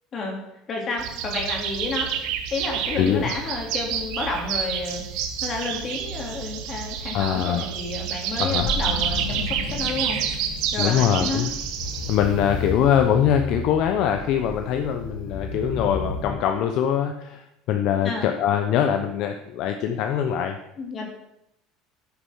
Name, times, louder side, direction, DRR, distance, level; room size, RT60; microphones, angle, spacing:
voice 1, 0.7-2.1 2.5-10.2 10.7-11.5 18.0-18.3 20.8-21.1, left 3 dB, 30° left, 1 dB, 2.5 m, -30 dB
sound 1, 1.0-12.7, right 8 dB, 65° right, 1.1 m, -29 dB
voice 2, 3.0-3.3 7.1-7.7 8.4-8.7 10.8-11.5 12.1-20.6, left 9 dB, 55° left, 6 dB, 0.7 m, -23 dB
sound 2, 8.5-16.3, left 3 dB, 80° left, 2.2 m, -33 dB
9.8 x 6.8 x 5.6 m, 0.84 s
cardioid pair, 150°, 0 cm